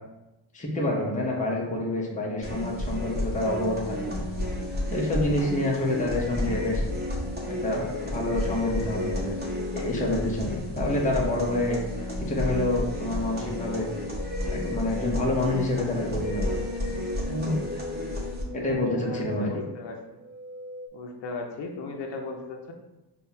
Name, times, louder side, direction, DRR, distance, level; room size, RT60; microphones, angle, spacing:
voice 1, 0.5-4.3 4.9-6.8 7.6-9.4 9.7-11.8 12.2-13.9 14.5-16.5 17.3-17.6 18.5-19.5, left 1 dB, 20° left, -2 dB, 0.7 m, -27 dB
sound 1, 2.4-18.4, left 1 dB, 25° right, 0.9 m, -31 dB
sound 2, 14.5-20.9, left 1 dB, 60° right, 0.5 m, -42 dB
voice 2, 19.0-20.0 20.9-22.7, left 3 dB, 70° left, 2 dB, 0.6 m, -37 dB
5.3 x 2.3 x 2.7 m, 1.0 s
cardioid pair, 105°, 43 cm